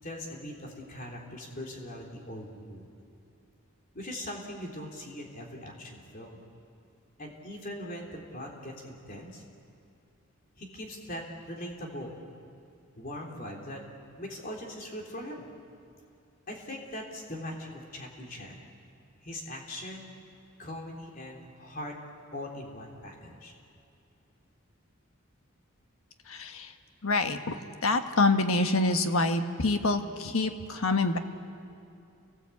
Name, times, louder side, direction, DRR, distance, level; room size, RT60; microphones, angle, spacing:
voice 1, 0.0-2.9 3.9-6.4 7.2-9.4 10.6-12.2 13.0-13.8 14.2-15.5 16.5-18.6 19.2-20.1 20.6-22.0 22.3-23.5, left 1 dB, 40° left, 0 dB, 3.6 m, -41 dB
voice 2, 26.3-26.7 27.0-27.5 27.8-31.2, left 3 dB, 80° left, 6 dB, 1.4 m, -26 dB
29.0 x 18.5 x 8.6 m, 2.6 s
head